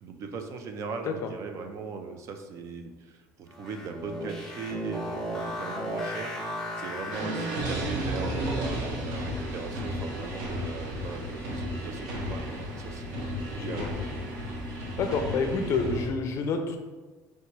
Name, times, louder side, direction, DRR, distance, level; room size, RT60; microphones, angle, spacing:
voice 1, 0.0-6.4 6.8-13.9, right 4 dB, 45° right, 5 dB, 0.4 m, -39 dB
sound 1, 3.5-8.0, equal, 5° left, 0.7 m, -35 dB
sound 2, 7.1-16.1, equal, 75° right, 0.9 m, -33 dB
voice 2, 13.6-13.9 15.0-16.8, left 4 dB, 45° left, 5 dB, 0.5 m, -28 dB
3.3 x 2.9 x 4.5 m, 1.3 s
cardioid pair, 150°, 7 cm